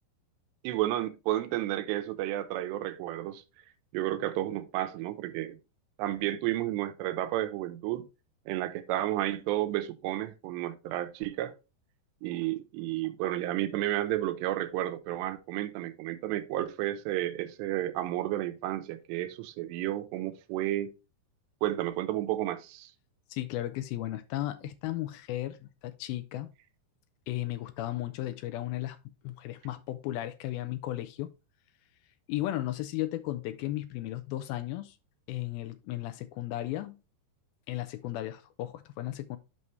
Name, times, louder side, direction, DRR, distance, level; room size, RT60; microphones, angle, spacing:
voice 1, 0.6-3.4 3.9-5.6 6.0-8.0 8.5-11.5 12.2-20.9 21.6-22.9, right 14 dB, 85° right, 2.9 m, -32 dB
voice 2, 23.3-26.5 27.3-29.0 29.2-31.3 32.3-35.0 35.3-37.0 37.7-39.4, left 15 dB, 90° left, 2.1 m, -35 dB
8.3 x 5.4 x 3.1 m
omnidirectional pair, 4.9 m